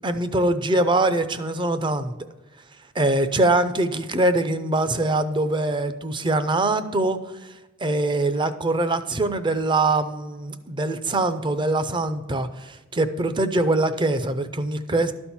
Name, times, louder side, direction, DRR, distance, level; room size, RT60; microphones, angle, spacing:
voice 1, 0.0-2.1 3.0-7.2 7.8-15.1, right 2 dB, 20° right, 11 dB, 0.5 m, -23 dB
12.5 x 4.4 x 7.1 m, 1.1 s
head